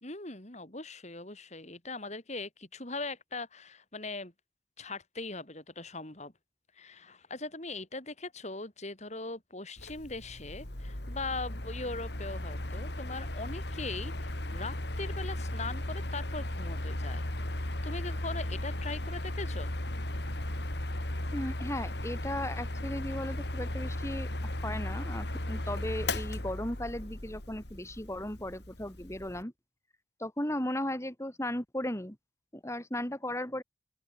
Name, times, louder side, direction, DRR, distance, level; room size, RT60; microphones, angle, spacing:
voice 1, 0.0-4.3 4.8-6.3 6.8-17.3 17.6-19.7, left 3 dB, 35° left, 3.5 m, -40 dB
Mechanical fan, 9.8-29.4, left 1 dB, 60° left, 2.9 m, -36 dB
voice 2, 21.3-24.3 24.6-29.5 30.2-32.2 32.5-33.6, left 1 dB, 15° left, 3.2 m, -36 dB
open air
head